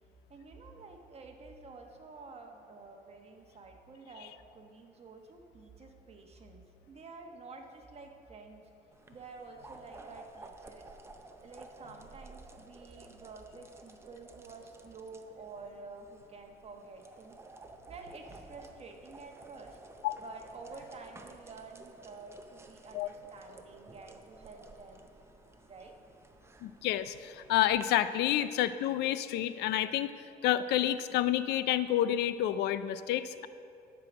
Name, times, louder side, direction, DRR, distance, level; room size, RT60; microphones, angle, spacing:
voice 1, 0.3-8.6 9.1-11.0 11.4-17.4 17.9-19.8 20.2-25.1 25.6-26.0, right 4 dB, 35° right, 3 dB, 1.2 m, -50 dB
sound 1, 8.9-27.8, right 2 dB, 15° right, 0.6 m, -54 dB
voice 2, 26.6-33.5, left 12 dB, 80° left, 14 dB, 0.4 m, -29 dB
12.0 x 4.8 x 6.2 m, 2.5 s
cardioid pair, 110°, 17 cm